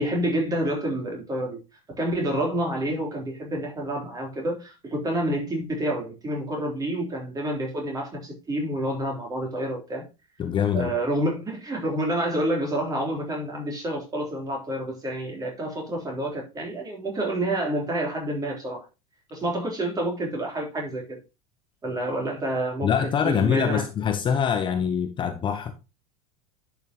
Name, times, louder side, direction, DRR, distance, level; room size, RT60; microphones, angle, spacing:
voice 1, 0.0-1.6 2.0-10.1 10.7-18.9 19.3-21.2 21.8-22.9 23.2-23.8, right 1 dB, 20° right, 3.6 m, -28 dB
voice 2, 10.4-10.9 22.8-25.7, left 7 dB, 25° left, 0.9 m, -24 dB
10.5 x 6.0 x 2.9 m
figure-of-eight pair, 80°, 18 cm